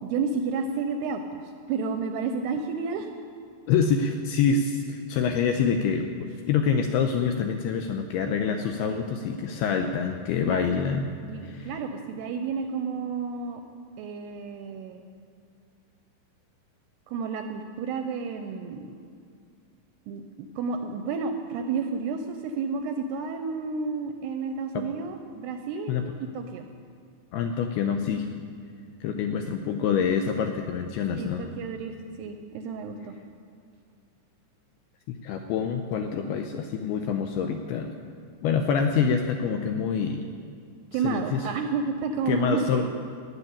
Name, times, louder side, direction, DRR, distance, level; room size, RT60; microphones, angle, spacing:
voice 1, 0.0-3.1 8.8-9.0 10.4-10.7 11.2-13.6 14.0-15.0 17.1-19.0 20.1-26.0 26.3-26.7 31.2-33.2 40.9-42.9, right 5 dB, 80° right, 6 dB, 2.4 m, -31 dB
voice 2, 3.7-11.1 11.4-11.7 24.7-24.9 25.9-26.0 27.3-28.3 29.0-31.5 35.1-38.0 38.4-40.3 41.0-41.4 42.3-42.9, left 6 dB, 85° left, 5 dB, 2.3 m, -26 dB
16.5 x 6.9 x 9.9 m, 2.2 s
omnidirectional pair, 5.2 m